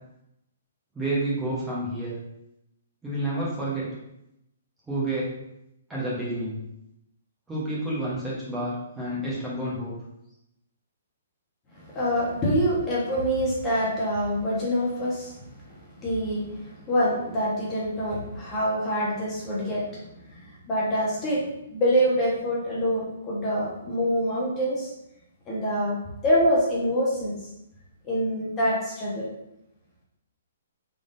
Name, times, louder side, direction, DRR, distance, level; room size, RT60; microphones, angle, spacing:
voice 1, 0.9-2.2 3.0-3.9 4.9-5.3 5.9-6.6 7.5-9.9, right 1 dB, 10° right, -7 dB, 1.1 m, -29 dB
voice 2, 11.9-15.4 16.0-20.0 20.3-24.9 25.5-25.9 26.2-27.4 28.0-29.3, equal, 20° left, -6 dB, 1.2 m, -25 dB
3.7 x 3.4 x 2.7 m, 0.84 s
hypercardioid pair, 150°, 0 cm